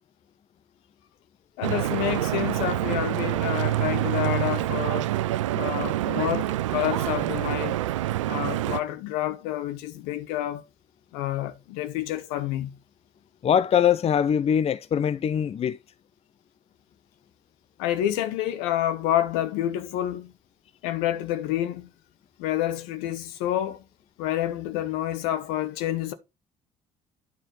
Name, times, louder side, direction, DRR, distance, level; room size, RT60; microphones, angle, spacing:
voice 1, 1.6-5.1 5.5-7.8 8.3-10.6 11.1-12.8 17.8-20.3 20.8-21.9 22.4-23.8 24.2-26.1, left 12 dB, 75° left, 0.9 m, -28 dB
Stream / Boat Water vehicle, 1.6-8.8, right 14 dB, 85° right, 0.4 m, -26 dB
voice 2, 13.4-15.8, left 8 dB, 40° left, 0.6 m, -22 dB
9.5 x 4.4 x 4.3 m
hypercardioid pair, 50°, 16 cm